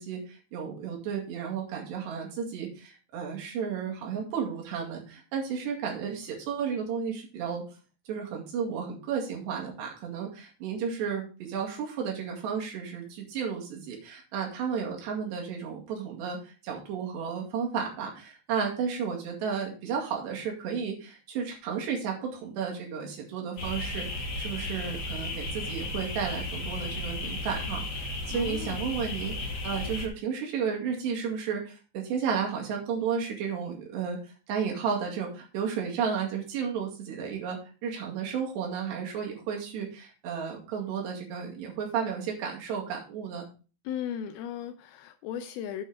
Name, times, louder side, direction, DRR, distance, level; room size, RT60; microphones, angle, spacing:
voice 1, 0.0-7.6 8.1-43.4, right 6 dB, 85° right, 0 dB, 4.3 m, -33 dB
sound 1, 23.6-30.1, left 2 dB, 55° left, 1.1 m, -34 dB
voice 2, 28.3-28.8 43.9-45.8, left 9 dB, 80° left, 9 dB, 2.3 m, -36 dB
8.8 x 5.6 x 5.0 m, 0.34 s
omnidirectional pair, 4.8 m